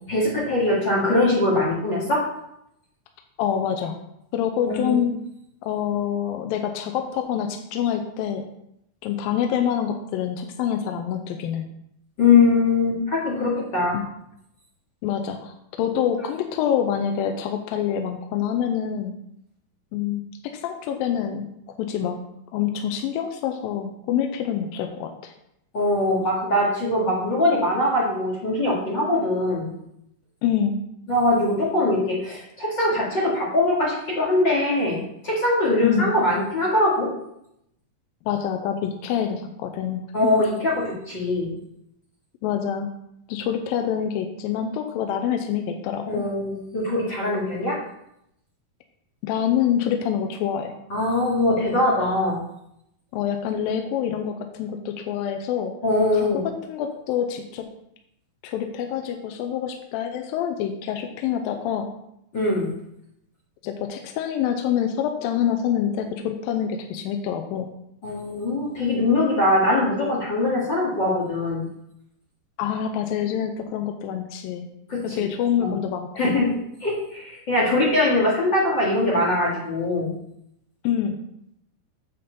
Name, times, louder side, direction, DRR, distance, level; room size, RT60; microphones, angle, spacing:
voice 1, 0.1-2.2 4.6-5.0 12.2-14.0 25.7-29.7 31.1-37.1 40.1-41.5 46.1-47.8 50.9-52.4 55.8-56.4 62.3-62.7 68.0-71.6 74.9-75.2 75.6-75.8 76.2-80.1, left 2 dB, 35° left, -6 dB, 2.1 m, -22 dB
voice 2, 3.4-4.0 4.3-5.1 5.6-8.4 9.0-11.7 13.9-14.0 15.0-19.1 19.9-21.5 21.8-22.2 22.5-25.3 30.4-30.8 35.8-36.1 38.3-40.3 42.4-42.9 43.3-46.2 49.2-50.7 53.1-55.7 56.1-57.7 58.4-61.9 63.6-67.7 72.6-74.7 75.0-76.3 80.8-81.2, left 9 dB, 80° left, 5 dB, 2.3 m, -26 dB
8.6 x 4.3 x 6.8 m, 0.78 s
omnidirectional pair, 4.3 m